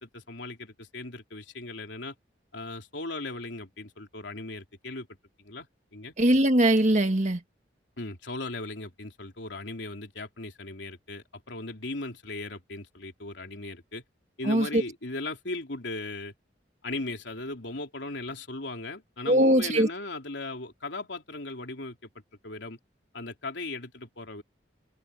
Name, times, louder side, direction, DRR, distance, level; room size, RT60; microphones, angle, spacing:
voice 1, 0.0-2.1 2.5-5.1 5.4-5.7 5.9-6.1 8.0-14.0 14.4-16.3 16.8-22.1 22.4-22.8 23.1-24.4, left 2 dB, 85° left, 3.3 m, -38 dB
voice 2, 6.2-7.4 14.5-14.8 19.3-19.9, right 1 dB, 40° right, 1.9 m, -21 dB
head